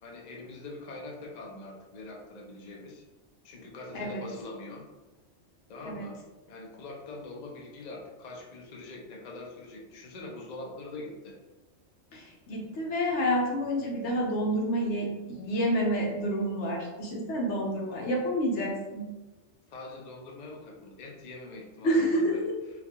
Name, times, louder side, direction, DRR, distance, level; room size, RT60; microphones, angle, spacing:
voice 1, 0.0-3.0 3.4-4.9 5.7-6.2 6.5-11.4 15.5-15.6 19.7-22.4, left 2 dB, 50° left, -1 dB, 0.6 m, -43 dB
voice 2, 3.9-4.2 5.8-6.1 12.1-19.0 21.8-22.4, equal, 75° left, -1 dB, 1.0 m, -29 dB
4.0 x 2.3 x 2.8 m, 1.1 s
omnidirectional pair, 1.2 m